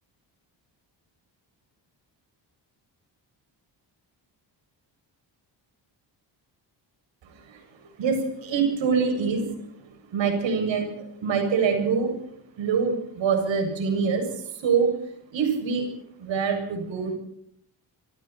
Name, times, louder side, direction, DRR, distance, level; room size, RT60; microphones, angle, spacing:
voice 1, 7.2-9.5 9.9-12.1 12.6-14.9 15.3-15.9 16.2-17.2, right 5 dB, 85° right, 5 dB, 7.5 m, -25 dB
27.0 x 26.5 x 4.5 m, 0.72 s
wide cardioid pair, 170°, 44 cm